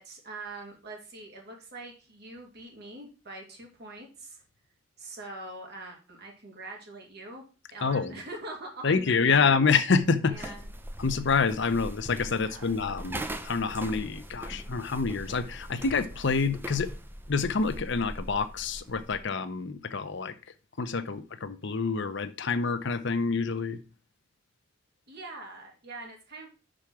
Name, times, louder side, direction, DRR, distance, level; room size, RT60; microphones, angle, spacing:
voice 1, 0.0-4.4 5.0-7.4 7.7-9.5 10.3-10.7 12.3-12.7 25.1-26.5, right 2 dB, 55° right, 0 dB, 2.5 m, -43 dB
voice 2, 7.8-8.1 8.8-10.5 11.0-16.9 17.3-20.3 20.8-23.8, left 5 dB, 65° left, 11 dB, 0.7 m, -27 dB
sound 1, 10.3-19.2, right 1 dB, 10° right, 0.6 m, -40 dB
5.7 x 5.1 x 6.1 m, 0.33 s
head